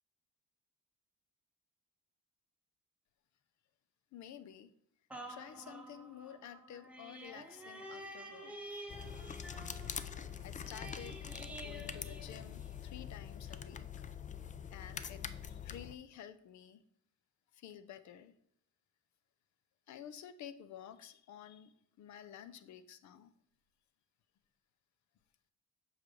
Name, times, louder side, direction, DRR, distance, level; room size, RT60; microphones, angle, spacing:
voice 1, 4.1-4.7 5.3-8.6 10.4-13.9 14.7-16.8 17.5-18.3 19.9-23.3, left 9 dB, 70° left, 0.6 m, -51 dB
sound 1, 5.1-12.9 13.5-13.6, right 1 dB, 5° right, 0.9 m, -50 dB
sound 2, 8.9-15.9, left 8 dB, 25° left, 0.4 m, -44 dB
7.2 x 5.0 x 3.1 m
cardioid pair, 90°, 30 cm